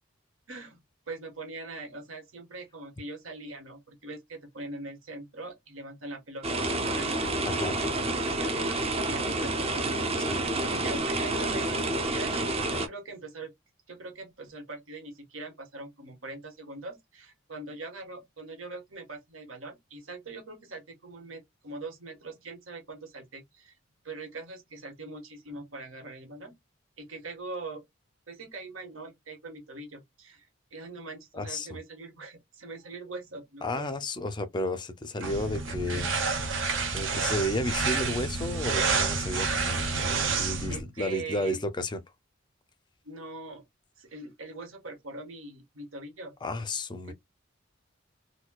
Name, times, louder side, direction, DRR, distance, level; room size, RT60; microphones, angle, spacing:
voice 1, 0.5-0.8 1.1-6.4 6.8-7.3 8.2-9.9 10.3-13.5 13.9-23.7 24.0-26.5 27.0-27.8 28.3-33.8 35.9-36.2 40.7-41.6 43.0-43.6 44.0-46.3 47.1-47.2, right 2 dB, 90° right, 1.3 m, -42 dB
sound 1, 6.4-12.9, right 2 dB, 30° right, 0.5 m, -29 dB
voice 2, 7.5-7.8 10.2-10.4 31.3-31.7 33.6-36.1 36.9-39.9 40.3-42.0 46.4-47.1, left 1 dB, 20° left, 0.4 m, -32 dB
sound 2, 35.2-40.8, right 4 dB, 70° right, 0.9 m, -29 dB
4.2 x 2.2 x 2.2 m
head